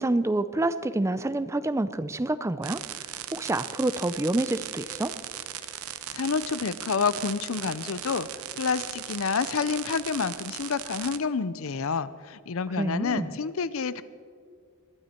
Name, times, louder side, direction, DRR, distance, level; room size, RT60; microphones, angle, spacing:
voice 1, 0.0-2.8 3.3-5.1 12.8-13.3, right 2 dB, 15° right, 13 dB, 0.4 m, -27 dB
sound 1, 2.6-11.2, right 11 dB, 85° right, 0.7 m, -38 dB
voice 2, 6.1-8.3 8.6-14.0, left 5 dB, 70° left, 16 dB, 0.6 m, -28 dB
21.5 x 12.5 x 4.4 m, 2.1 s
head